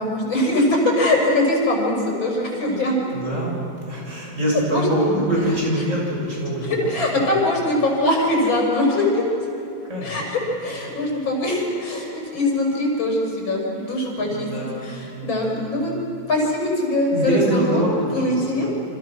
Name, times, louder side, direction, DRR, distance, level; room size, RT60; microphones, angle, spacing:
voice 1, 0.0-3.0 4.7-4.9 6.6-9.2 10.0-14.5 14.8-15.9 16.3-18.7, left 1 dB, 85° left, -1 dB, 6.8 m, -22 dB
voice 2, 3.1-3.5 3.9-6.9 7.2-7.3 9.9-10.2 14.2-15.8 17.1-18.7, right 1 dB, 40° right, -3 dB, 7.8 m, -25 dB
29.5 x 27.0 x 6.3 m, 2.9 s
omnidirectional pair, 2.1 m